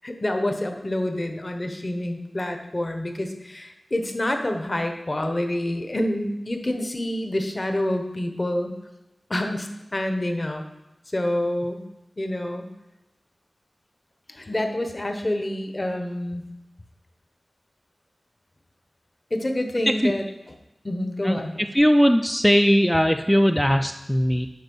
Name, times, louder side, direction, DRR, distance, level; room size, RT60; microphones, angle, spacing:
voice 1, 0.0-8.7 9.3-10.6 11.1-11.8 12.2-12.7 14.3-16.4 19.3-20.6 20.8-21.7, left 1 dB, 35° left, 5 dB, 1.0 m, -27 dB
voice 2, 21.7-24.5, equal, 5° left, 5 dB, 0.4 m, -19 dB
8.0 x 5.3 x 5.4 m, 0.95 s
wide cardioid pair, 55°, 0 cm